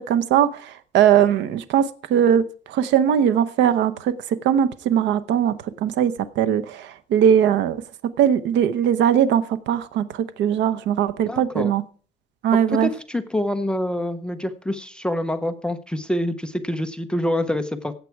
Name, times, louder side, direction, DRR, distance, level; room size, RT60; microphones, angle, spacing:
voice 1, 0.1-0.5 0.9-1.8 2.1-2.4 2.7-4.1 4.4-5.5 5.8-6.8 7.1-7.8 8.2-10.0 10.4-11.8 12.4-12.9, right 9 dB, 65° right, 11 dB, 0.8 m, -19 dB
voice 2, 11.3-11.8 12.5-17.9, left 1 dB, 5° left, 7 dB, 0.6 m, -26 dB
15.0 x 8.3 x 4.6 m, 0.42 s
cardioid pair, 170°, 20 cm